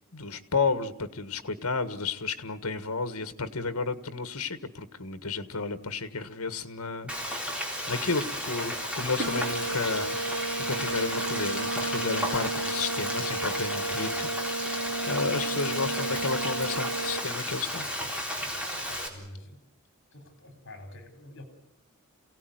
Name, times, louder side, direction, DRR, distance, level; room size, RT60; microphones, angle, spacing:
voice 1, 0.1-7.6 7.9-10.2 10.6-17.9, left 4 dB, 75° left, 12 dB, 1.6 m, -32 dB
Frying (food), 7.1-19.1, equal, 5° right, 3.7 m, -33 dB
sound 1, 9.2-17.2, right 3 dB, 60° right, 4.9 m, -33 dB
voice 2, 18.9-19.6 20.1-21.4, left 1 dB, 60° left, 8 dB, 3.7 m, -47 dB
28.5 x 17.0 x 9.3 m, 0.86 s
head